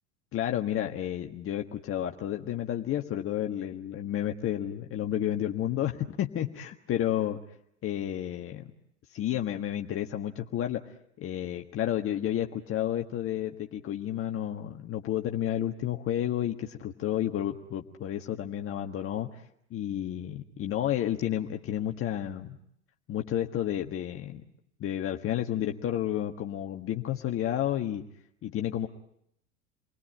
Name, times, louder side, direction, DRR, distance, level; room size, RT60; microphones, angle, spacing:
voice 1, 0.3-7.4 7.8-8.7 9.1-10.8 11.2-19.4 19.7-22.6 23.1-24.4 24.8-28.0 28.4-28.9, left 11 dB, 40° left, 3 dB, 1.6 m, -31 dB
29.5 x 21.5 x 8.9 m, 0.76 s
hypercardioid pair, 85°, 34 cm